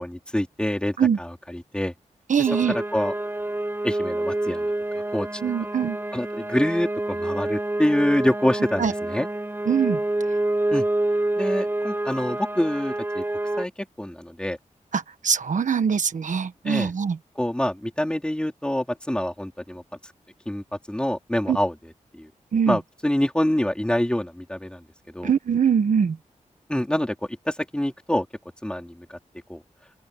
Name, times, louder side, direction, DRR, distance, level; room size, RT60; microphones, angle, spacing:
voice 1, 0.0-1.9 2.4-3.1 3.8-4.7 5.1-5.3 6.1-9.3 10.7-10.8 11.4-13.2 13.6-13.7 14.0-14.6 16.6-16.9 17.4-19.8 20.5-22.3 22.7-24.8 25.1-25.3 26.7-27.1 27.5-28.3 28.6-29.2 29.5-29.6, left 1 dB, 5° left, 4.1 m, -26 dB
voice 2, 2.3-2.7 5.4-6.0 8.8-8.9 9.7-10.0 15.2-17.1 21.5-21.6 22.5-22.7 25.2-26.1, right 7 dB, 75° right, 1.4 m, -22 dB
sound 1, 2.5-13.7, right 1 dB, 15° right, 4.6 m, -27 dB
open air
wide cardioid pair, 125°, 13 cm